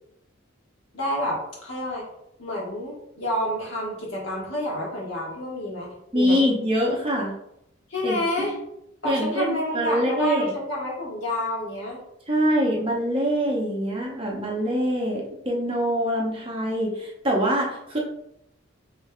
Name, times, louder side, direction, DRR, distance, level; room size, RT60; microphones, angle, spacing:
voice 1, 0.9-2.0 2.4-5.9 6.1-6.4 7.9-8.5 9.0-12.0, left 1 dB, 65° left, -3 dB, 1.3 m, -29 dB
voice 2, 6.1-7.3 8.0-8.6 9.0-10.5 12.3-18.0, equal, 25° right, -2 dB, 0.7 m, -24 dB
5.2 x 3.2 x 2.2 m, 0.78 s
head